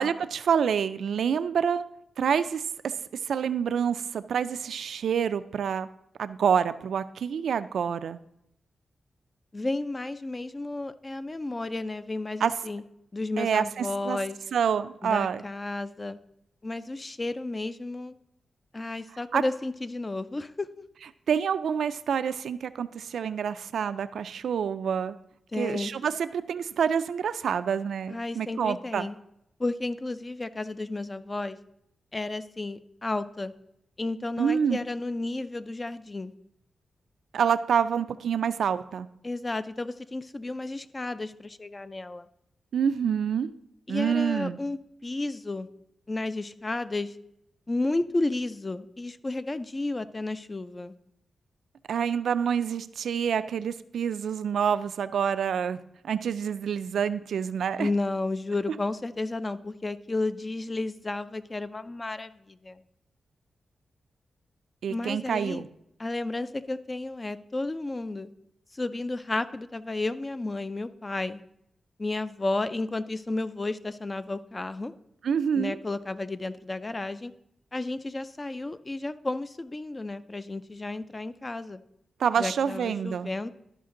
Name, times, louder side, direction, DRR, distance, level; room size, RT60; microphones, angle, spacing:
voice 1, 0.0-1.8 2.2-2.9 3.3-5.9 6.2-8.2 12.4-12.5 13.4-14.2 14.5-15.4 19.3-19.4 21.3-25.2 25.6-29.1 34.4-34.8 37.3-39.1 42.7-43.5 43.9-44.6 51.9-57.9 64.8-65.7 75.2-75.8 82.2-83.3, right 7 dB, 85° right, 12 dB, 0.4 m, -27 dB
voice 2, 9.5-12.8 13.1-14.4 15.0-16.2 16.6-18.2 18.7-20.8 25.5-25.9 28.1-29.2 29.6-31.6 32.1-33.5 34.0-36.3 39.2-42.2 43.9-45.7 46.1-47.2 47.7-50.9 57.8-62.8 64.9-65.6 66.0-68.3 68.7-71.4 72.0-74.9 75.6-77.3 77.7-81.8 82.4-83.5, left 2 dB, 25° left, 13 dB, 0.4 m, -32 dB
12.0 x 5.1 x 3.7 m, 0.78 s
wide cardioid pair, 120°, 0 cm